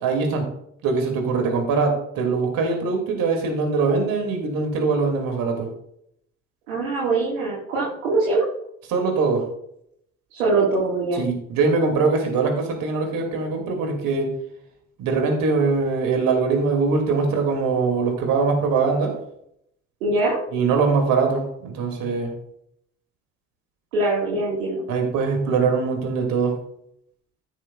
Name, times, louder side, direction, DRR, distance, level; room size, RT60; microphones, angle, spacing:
voice 1, 0.0-0.5 0.8-5.7 8.9-9.5 11.1-14.3 15.0-19.1 20.5-22.3 24.9-26.5, right 4 dB, 60° right, 3 dB, 2.6 m, -22 dB
voice 2, 6.7-8.5 10.3-11.2 20.0-20.4 23.9-24.8, right 3 dB, 80° right, -5 dB, 1.9 m, -22 dB
14.0 x 6.4 x 2.4 m, 0.72 s
figure-of-eight pair, 50°, 38 cm